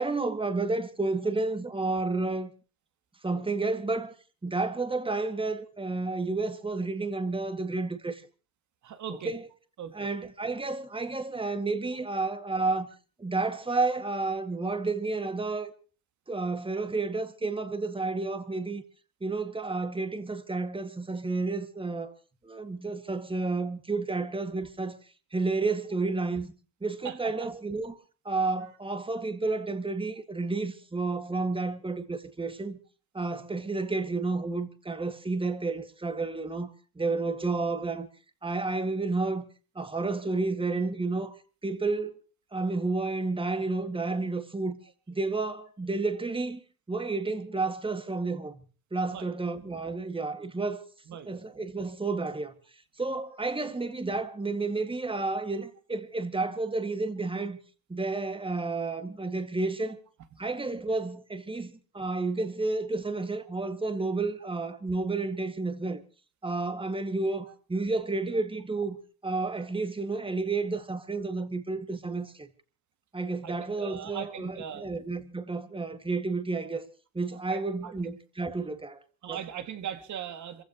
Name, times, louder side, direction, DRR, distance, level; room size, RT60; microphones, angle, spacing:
voice 1, 0.0-2.5 3.2-4.1 4.4-8.2 9.1-9.5 9.9-12.9 13.2-15.7 16.3-18.8 19.2-22.1 22.4-25.0 25.3-26.5 26.8-28.0 28.3-32.8 33.1-38.1 38.4-39.4 39.8-41.4 41.6-42.2 42.5-44.8 45.1-46.6 46.9-48.6 48.9-50.8 51.3-52.5 53.0-57.6 57.9-60.0 60.4-66.0 66.4-69.0 69.2-72.5 73.1-76.9 77.1-79.0 79.3-79.4, right 3 dB, 15° right, 2.1 m, -31 dB
voice 2, 8.8-9.4 9.8-10.1 27.0-27.3 49.1-49.3 51.1-51.4 73.4-74.9 77.5-77.9 79.2-80.6, right 9 dB, 70° right, 2.3 m, -39 dB
27.5 x 15.5 x 3.0 m
cardioid pair, 90°, 30 cm